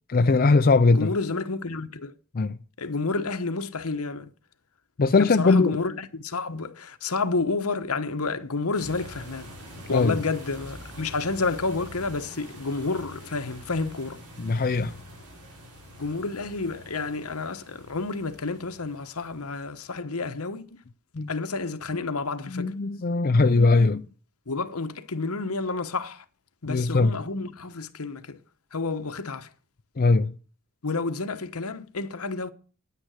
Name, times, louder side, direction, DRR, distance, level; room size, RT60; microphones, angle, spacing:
voice 1, 0.1-1.1 2.3-2.6 5.0-5.7 9.9-10.2 14.4-14.9 21.2-21.3 22.5-24.1 26.7-27.2 30.0-30.3, left 3 dB, 40° left, 0.5 m, -20 dB
voice 2, 0.9-2.1 2.8-4.3 5.2-9.5 9.9-14.2 16.0-20.8 21.3-22.7 24.5-26.2 26.6-28.4 28.7-29.5 30.8-32.5, left 3 dB, 70° left, 1.2 m, -30 dB
sound 1, 8.7-19.9, equal, 80° right, 4.9 m, -45 dB
9.7 x 9.6 x 6.4 m
head